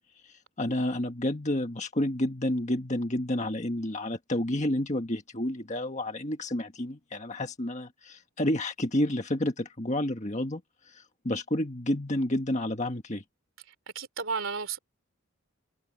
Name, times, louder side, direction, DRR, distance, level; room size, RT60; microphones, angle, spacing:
voice 1, 0.2-13.2, left 1 dB, 30° left, 1.6 m, -30 dB
voice 2, 13.9-14.8, right 5 dB, 60° right, 3.3 m, -32 dB
head